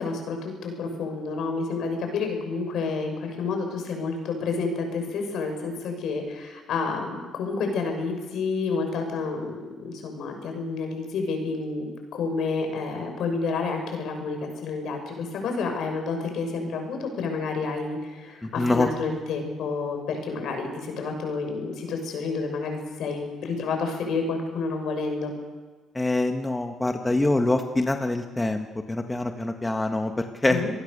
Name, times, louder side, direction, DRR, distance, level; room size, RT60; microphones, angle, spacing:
voice 1, 0.0-25.3 30.5-30.7, left 4 dB, 70° left, 4 dB, 6.6 m, -29 dB
voice 2, 18.4-18.9 25.9-30.6, left 2 dB, 15° left, 5 dB, 1.7 m, -25 dB
26.5 x 19.0 x 6.9 m, 1.3 s
cardioid pair, 95°, 0 cm